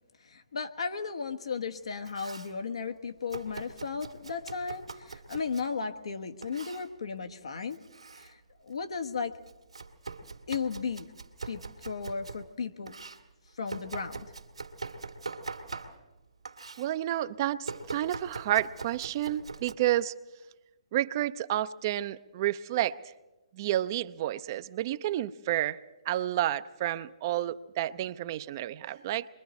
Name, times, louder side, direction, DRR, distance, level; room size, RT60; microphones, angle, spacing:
voice 1, 0.2-7.8 8.2-9.3 10.5-11.1 11.5-13.0 13.5-14.3, left 5 dB, 70° left, 7 dB, 1.3 m, -35 dB
Domestic sounds home sounds, 1.8-2.6 3.3-5.7 6.4-6.9 7.7-8.3 8.7-12.4 12.9-16.2 16.5-16.9 17.6-19.7, right 4 dB, 85° right, 2.0 m, -42 dB
voice 2, 16.8-20.1 20.9-23.0 23.5-25.8 26.1-29.3, right 13 dB, 40° right, 13 dB, 0.6 m, -30 dB
27.0 x 22.5 x 4.2 m, 1.1 s
figure-of-eight pair, 135°, 3 cm